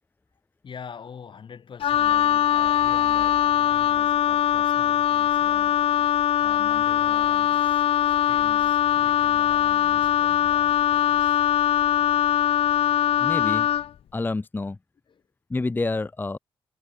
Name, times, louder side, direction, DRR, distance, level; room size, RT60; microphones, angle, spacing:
voice 1, 0.6-11.4 15.1-15.2, left 6 dB, 55° left, 1.5 m, -45 dB
Wind instrument woodwind instrument, 1.8-13.9, left 10 dB, 75° left, 0.4 m, -21 dB
voice 2, 13.2-13.7 14.1-14.8 15.5-16.4, left 3 dB, 20° left, 0.6 m, -28 dB
cardioid pair, 90°, 10 cm